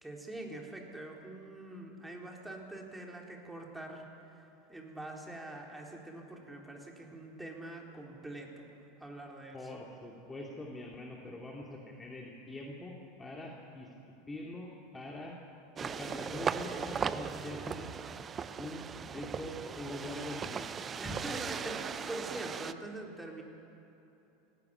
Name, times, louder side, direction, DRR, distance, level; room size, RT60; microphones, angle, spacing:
voice 1, 0.0-4.1 4.7-8.7 9.0-9.6 21.0-23.4, right 1 dB, 5° right, 0 dB, 4.0 m, -44 dB
voice 2, 9.5-13.9 14.3-15.3 15.8-18.0 18.6-18.8 19.1-20.7, left 2 dB, 15° left, -1 dB, 2.6 m, -43 dB
sound 1, 15.8-22.7, right 6 dB, 25° right, 0.7 m, -38 dB
18.0 x 16.5 x 9.9 m, 2.9 s
figure-of-eight pair, 80°, 0 cm